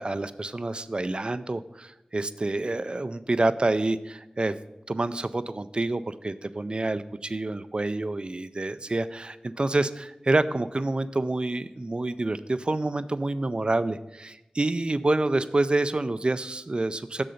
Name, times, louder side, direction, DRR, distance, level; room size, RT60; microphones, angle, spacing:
voice 1, 0.0-4.5 4.9-17.2, right 2 dB, 40° right, 12 dB, 0.3 m, -27 dB
6.7 x 3.8 x 6.4 m, 0.95 s
wide cardioid pair, 60°, 3 cm